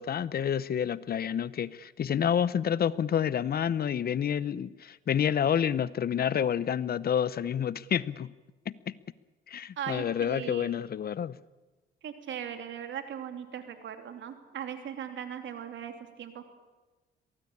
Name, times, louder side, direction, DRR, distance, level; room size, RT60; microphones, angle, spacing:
voice 1, 0.0-8.3 8.7-8.9 9.5-11.4, left 8 dB, 50° left, 19 dB, 0.8 m, -29 dB
voice 2, 9.8-10.8 12.0-16.4, right 9 dB, 70° right, 7 dB, 3.0 m, -39 dB
23.5 x 18.0 x 8.6 m, 1.2 s
cardioid pair, 90°, 20 cm